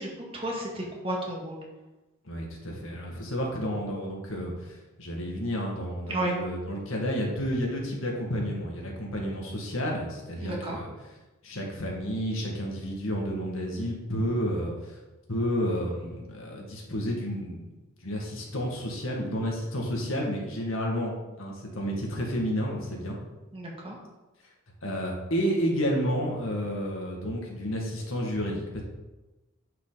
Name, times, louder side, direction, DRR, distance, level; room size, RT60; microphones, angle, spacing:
voice 1, 0.0-1.6 6.1-6.3 10.4-10.8 23.5-24.0, right 1 dB, 25° right, -2 dB, 1.9 m, -32 dB
voice 2, 2.2-10.9 11.4-15.0 15.3-17.8 18.0-23.2 24.8-28.8, equal, 75° left, -1 dB, 2.0 m, -31 dB
9.7 x 5.8 x 4.1 m, 1.1 s
head